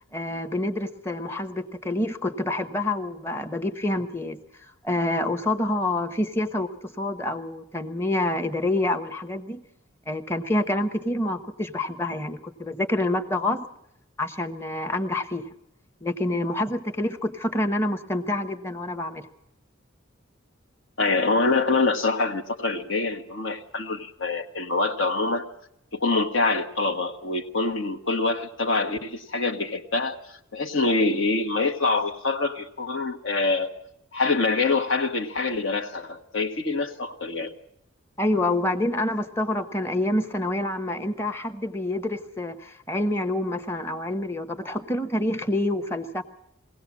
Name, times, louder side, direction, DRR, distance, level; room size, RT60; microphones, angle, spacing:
voice 1, 0.1-4.4 4.8-9.6 10.1-13.6 14.2-15.4 16.0-19.3 38.2-46.2, left 1 dB, 10° left, 9 dB, 1.0 m, -27 dB
voice 2, 21.0-25.4 25.9-30.2 30.5-33.7 34.1-37.5, left 3 dB, 70° left, 5 dB, 1.3 m, -25 dB
22.0 x 16.5 x 7.3 m, 0.78 s
head